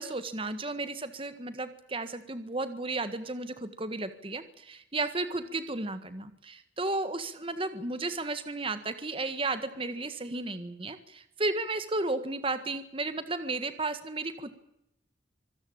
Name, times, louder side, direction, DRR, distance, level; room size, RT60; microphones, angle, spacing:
voice 1, 0.0-14.5, right 2 dB, 30° right, 11 dB, 1.6 m, -33 dB
25.5 x 17.0 x 8.8 m, 0.78 s
head